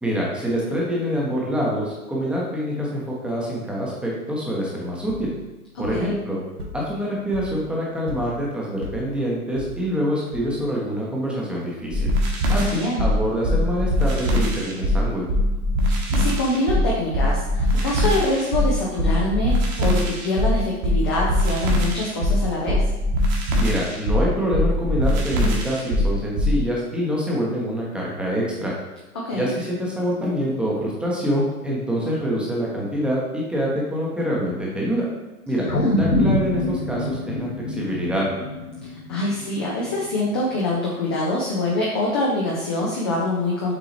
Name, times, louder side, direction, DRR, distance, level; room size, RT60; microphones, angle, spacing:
voice 1, 0.0-5.3 5.8-6.4 6.7-12.1 12.5-15.3 23.6-28.7 29.3-35.1 35.5-35.7 35.9-38.2, equal, ahead, -4 dB, 0.9 m, -25 dB
sound 1, 5.1-10.9, left 1 dB, 75° right, 1.1 m, -38 dB
voice 2, 5.7-6.1 12.5-13.1 16.1-22.9 29.1-29.5 35.5-36.0 38.8-43.7, left 2 dB, 20° left, -4 dB, 0.4 m, -25 dB
sound 2, 11.9-26.6, left 1 dB, 30° right, 1.2 m, -21 dB
sound 3, 35.7-40.2 40.6-40.7, left 2 dB, 80° left, 0.9 m, -25 dB
7.2 x 4.5 x 3.1 m, 1.1 s
figure-of-eight pair, 110°, 45 cm